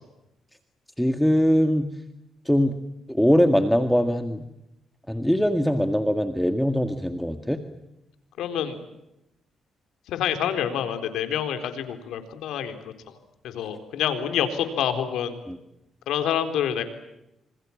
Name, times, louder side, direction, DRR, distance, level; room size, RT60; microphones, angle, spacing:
voice 1, 1.0-1.9 2.5-2.7 3.1-4.5 5.1-7.6 15.5-15.6, equal, ahead, 7 dB, 1.9 m, -22 dB
voice 2, 8.4-8.8 10.1-12.8 13.4-15.4 16.1-16.8, left 9 dB, 90° left, 8 dB, 4.0 m, -27 dB
27.5 x 27.0 x 7.2 m, 0.88 s
cardioid pair, 105°, 0 cm